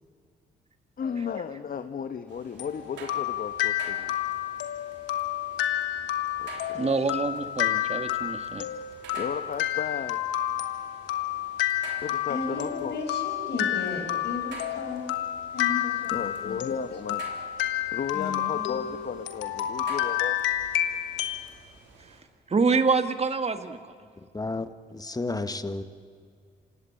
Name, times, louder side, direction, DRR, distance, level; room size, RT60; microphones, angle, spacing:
voice 1, 1.0-4.2 6.3-6.9 7.2-7.3 9.1-10.3 12.0-13.0 16.1-17.3 17.9-20.4, left 7 dB, 50° left, 9 dB, 1.1 m, -34 dB
sound 1, 2.3-22.2, right 5 dB, 80° right, 3.6 m, -49 dB
sound 2, 2.6-21.5, left 12 dB, 85° left, 1.4 m, -30 dB
voice 2, 6.7-8.7 22.5-23.9, right 4 dB, 35° right, 9 dB, 1.8 m, -26 dB
voice 3, 12.3-15.0 15.5-16.1 16.4-16.6 18.1-18.8, left 3 dB, 70° left, 3 dB, 5.9 m, -34 dB
voice 4, 24.3-25.8, left 3 dB, 20° left, 11 dB, 1.6 m, -32 dB
27.0 x 17.0 x 8.7 m, 2.2 s
supercardioid pair, 55°, 19 cm